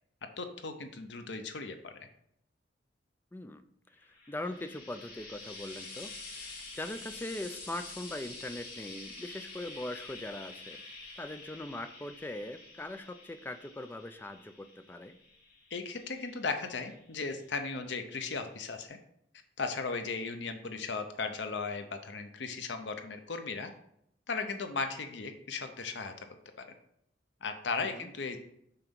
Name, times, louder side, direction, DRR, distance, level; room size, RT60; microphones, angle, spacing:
voice 1, 0.4-1.9 15.7-19.0 19.6-23.7 24.3-26.1 26.6-26.7 27.4-28.4, left 4 dB, 85° left, 7 dB, 0.7 m, -36 dB
voice 2, 3.3-3.6 4.3-10.8 11.2-15.2 27.8-28.1, left 1 dB, 10° left, 9 dB, 0.4 m, -41 dB
Frying (food), 4.0-17.4 18.4-18.5, left 3 dB, 55° left, 2.1 m, -48 dB
5.8 x 4.0 x 5.3 m, 0.73 s
head